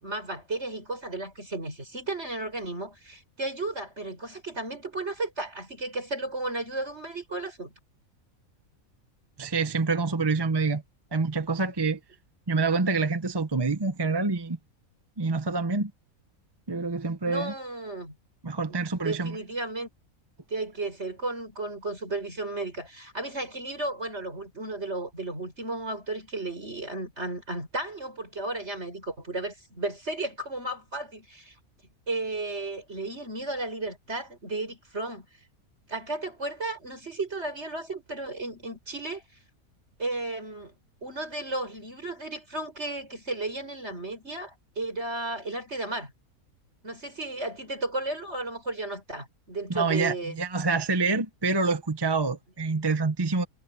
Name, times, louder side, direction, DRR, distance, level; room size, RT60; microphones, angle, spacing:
voice 1, 0.0-7.7 17.2-18.2 18.7-19.9 20.5-31.5 32.1-35.3 35.9-39.2 40.0-40.7 41.0-46.1 46.8-50.4, right 2 dB, 50° right, 6.7 m, -34 dB
voice 2, 9.4-10.8 11.1-12.0 12.5-14.6 15.2-15.9 16.7-17.5 18.4-19.4 49.7-53.4, right 4 dB, 20° right, 0.8 m, -26 dB
omnidirectional pair, 1.5 m